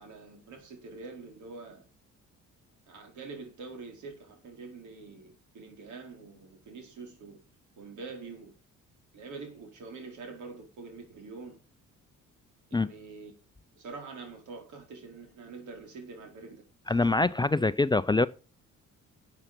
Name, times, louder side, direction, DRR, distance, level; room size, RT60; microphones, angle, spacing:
voice 1, 0.0-1.8 2.9-7.4 7.8-8.5 9.1-11.6 12.7-13.3 13.8-16.6, right 4 dB, 75° right, 4.7 m, -45 dB
voice 2, 16.9-18.3, left 3 dB, 15° left, 0.5 m, -24 dB
12.0 x 8.1 x 5.3 m
cardioid pair, 90°, 30 cm